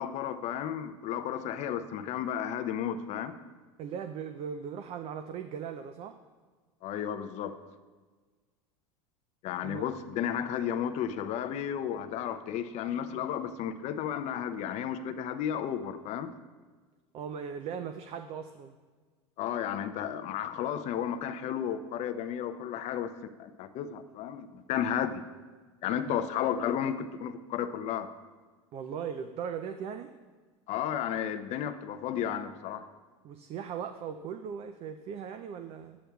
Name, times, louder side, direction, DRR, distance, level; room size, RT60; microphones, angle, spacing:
voice 1, 0.0-3.4 6.8-7.5 9.4-16.3 19.4-23.1 23.4-25.2 25.8-28.1 30.7-32.9, left 9 dB, 45° left, 10 dB, 0.5 m, -33 dB
voice 2, 3.8-6.2 9.6-9.9 17.1-18.8 26.1-26.2 28.7-30.1 33.2-36.0, right 7 dB, 40° right, 9 dB, 0.4 m, -38 dB
10.0 x 8.5 x 2.3 m, 1.4 s
hypercardioid pair, 100°, 16 cm